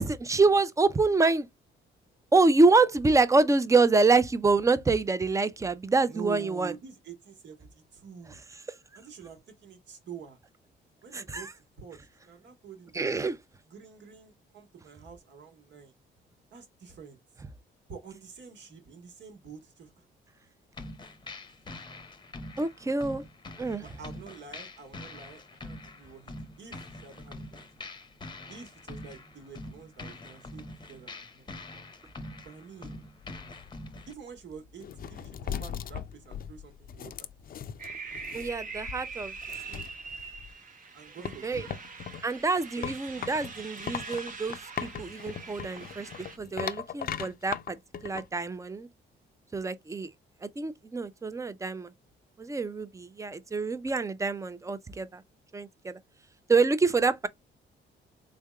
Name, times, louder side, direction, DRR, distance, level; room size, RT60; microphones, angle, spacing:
voice 1, 0.0-1.5 2.3-6.7 11.1-11.5 12.9-13.4 22.6-23.2 23.6-23.8 38.3-39.3 39.7-39.8 41.4-41.7 42.2-46.1 46.4-47.8 48.0-48.9 49.5-50.1 50.4-51.9 52.4-55.2 55.5-56.0 56.5-57.3, right 3 dB, 15° right, 0.5 m, -26 dB
voice 2, 2.4-2.8 6.1-8.4 8.9-10.4 11.0-13.1 13.6-15.9 16.5-17.2 17.9-20.1 21.7-21.8 23.8-27.7 28.5-31.6 32.4-33.0 34.1-37.3 40.9-41.8 42.8-42.9, right 6 dB, 65° right, 1.4 m, -47 dB
sound 1, 20.7-34.1, left 2 dB, 25° left, 0.8 m, -44 dB
sound 2, 33.2-40.5 41.2-48.3, left 8 dB, 45° left, 0.5 m, -39 dB
sound 3, 37.8-46.4, right 4 dB, 45° right, 0.9 m, -43 dB
3.6 x 3.4 x 2.2 m
cardioid pair, 90°, 20 cm